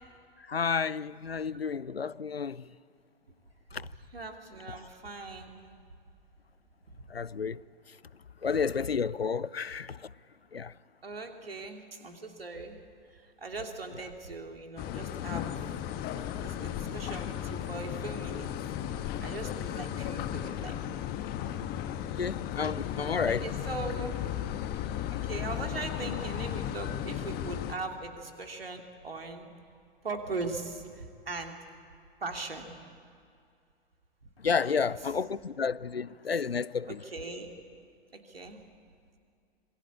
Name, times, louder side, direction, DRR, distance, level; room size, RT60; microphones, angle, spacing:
voice 1, 0.5-2.7 3.7-3.9 4.7-4.8 7.1-7.6 8.4-10.1 10.5-10.7 13.9-14.0 22.2-23.5 34.4-37.0, left 6 dB, 85° left, 0.6 m, -31 dB
voice 2, 4.1-5.6 11.0-12.8 13.4-15.4 16.4-18.5 19.2-20.8 23.0-23.1 23.4-24.2 25.3-29.5 30.0-30.8 31.3-31.5 32.2-32.7 34.6-34.8 36.9-37.5 38.3-38.6, right 3 dB, 75° right, 2.7 m, -39 dB
sound 1, 14.8-27.7, left 11 dB, 30° left, 1.4 m, -35 dB
26.5 x 22.0 x 8.6 m
figure-of-eight pair, 95°, 29 cm